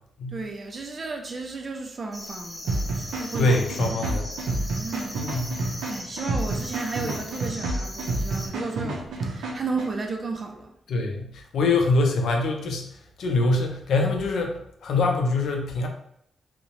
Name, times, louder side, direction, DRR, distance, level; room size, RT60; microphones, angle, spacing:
voice 1, 0.3-3.5 4.6-5.5 5.9-10.7, right 4 dB, 30° right, 0.3 m, -34 dB
sound 1, 2.1-8.5, left 1 dB, 5° left, 0.6 m, -39 dB
sound 2, 2.7-9.9, right 2 dB, 90° right, 0.5 m, -30 dB
voice 2, 3.4-4.3 5.3-5.8 10.9-12.9 13.2-15.9, left 2 dB, 65° left, 0.4 m, -24 dB
2.6 x 2.0 x 2.9 m
wide cardioid pair, 175°, 0 cm